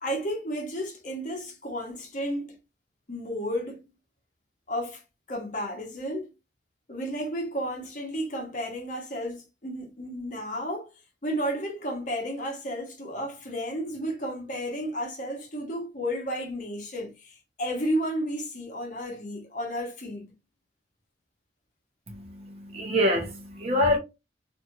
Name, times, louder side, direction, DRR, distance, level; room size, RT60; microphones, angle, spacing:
voice 1, 0.0-2.6 3.1-3.8 4.7-5.0 5.3-6.3 6.9-10.9 11.2-20.2, equal, 45° left, 0.9 m, -32 dB
voice 2, 22.1-24.0, left 1 dB, 35° right, 0.7 m, -26 dB
2.6 x 2.4 x 2.8 m
head